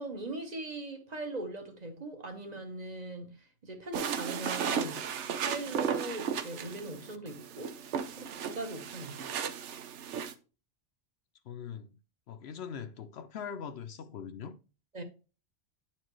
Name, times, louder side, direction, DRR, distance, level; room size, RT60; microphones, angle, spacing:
voice 1, 0.0-3.4 3.6-5.1 5.4-7.8 8.2-9.4 14.9-15.0, right 2 dB, 40° right, 1.2 m, -40 dB
sound 1, 3.9-10.3, right 7 dB, 85° right, 1.0 m, -35 dB
voice 2, 11.4-12.0 12.3-14.6, left 7 dB, 65° left, 0.8 m, -41 dB
9.7 x 4.4 x 3.1 m
omnidirectional pair, 1.2 m